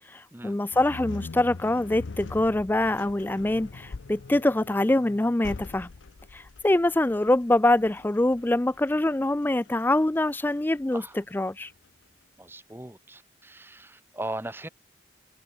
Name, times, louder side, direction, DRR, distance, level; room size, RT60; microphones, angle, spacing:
voice 1, 0.1-5.9 6.3-11.7, left 1 dB, 10° left, 0.3 m, -24 dB
sound 1, 0.7-11.9, left 3 dB, 80° left, 0.6 m, -43 dB
voice 2, 12.4-14.7, right 1 dB, 10° right, 1.1 m, -38 dB
head